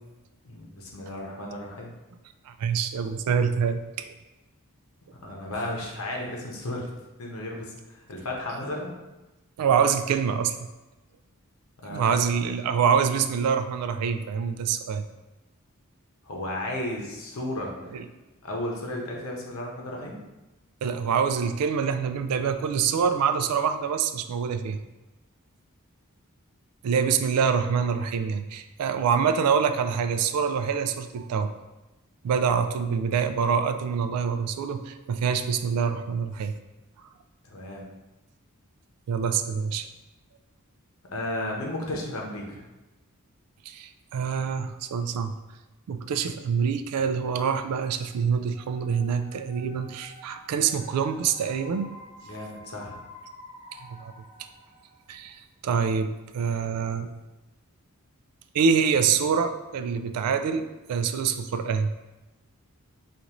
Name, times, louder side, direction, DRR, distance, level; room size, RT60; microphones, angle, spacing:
voice 1, 0.4-1.9 5.1-6.9 7.2-8.9 11.8-12.2 16.3-17.7 18.4-20.2 37.4-37.8 41.1-42.6 52.3-53.0, left 1 dB, 65° left, -1 dB, 0.8 m, -34 dB
voice 2, 2.5-3.8 4.1-4.2 9.6-10.6 11.9-15.0 17.9-18.1 20.8-24.8 26.8-31.5 32.2-36.5 39.1-39.9 43.7-45.3 45.9-51.9 53.8-54.1 55.1-57.1 58.5-61.9, right 6 dB, 85° right, 9 dB, 0.3 m, -25 dB
sound 1, 48.5-55.3, left 1 dB, 30° left, 0.6 m, -49 dB
5.1 x 2.5 x 3.0 m, 1.0 s
head